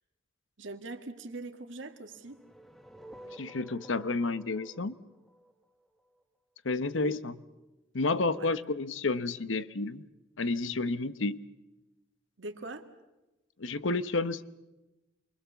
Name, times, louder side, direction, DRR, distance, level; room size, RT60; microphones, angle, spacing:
voice 1, 0.6-2.4 6.9-7.2 8.3-8.6 12.4-12.9, right 2 dB, 75° right, 1.9 m, -42 dB
sound 1, 2.1-6.2, right 1 dB, ahead, 1.2 m, -51 dB
voice 2, 3.4-4.9 6.6-7.3 7.9-10.0 10.4-11.4 13.6-14.4, left 3 dB, 80° left, 0.9 m, -30 dB
28.5 x 23.5 x 7.1 m
head